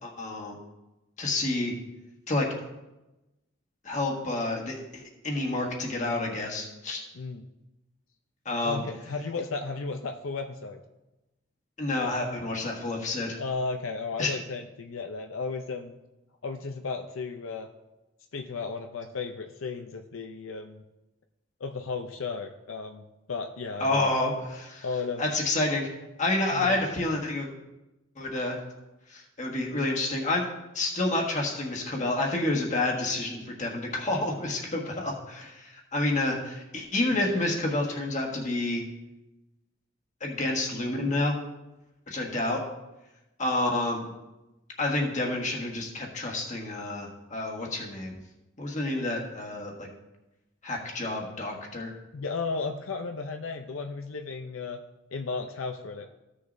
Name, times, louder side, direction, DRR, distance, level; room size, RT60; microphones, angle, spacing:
voice 1, 0.2-0.6 1.2-1.7 2.3-2.5 3.8-7.0 8.4-8.8 11.8-13.4 14.2-14.3 23.8-24.8 25.2-25.9 26.2-27.5 28.2-28.6 29.1-30.4 30.7-38.8 40.2-41.3 42.1-42.6 43.4-44.0 44.8-48.1 48.6-49.7 50.6-51.9, left 2 dB, 40° left, -1 dB, 1.7 m, -29 dB
voice 2, 8.6-10.8 13.4-16.0 16.4-17.7 18.3-20.8 21.6-24.1 24.8-25.3 26.5-26.8 37.1-37.5 52.1-54.8 55.1-56.1, left 4 dB, 80° left, 4 dB, 0.6 m, -34 dB
15.0 x 6.6 x 2.6 m, 1.0 s
head